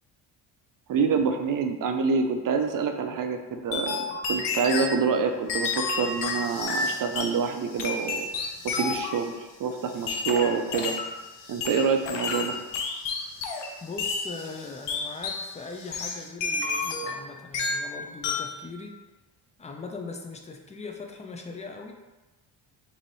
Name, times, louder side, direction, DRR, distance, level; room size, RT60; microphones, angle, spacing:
voice 1, 0.9-8.3 8.6-10.9 11.5-12.6, right 5 dB, 45° right, 5 dB, 0.5 m, -27 dB
sound 1, 3.2-16.3, left 3 dB, 90° left, 0.9 m, -49 dB
sound 2, 3.7-5.0 5.5-7.4 7.8-9.2 10.1-11.1 11.6-13.7 14.0-14.3 14.9-15.5 15.9-17.2 17.5-17.9 18.2-18.6, left 4 dB, 65° left, 0.7 m, -30 dB
voice 2, 13.8-18.9 19.6-21.9, left 3 dB, 15° left, 3 dB, 0.3 m, -40 dB
3.2 x 2.7 x 4.0 m, 1.1 s
cardioid pair, 95°, 47 cm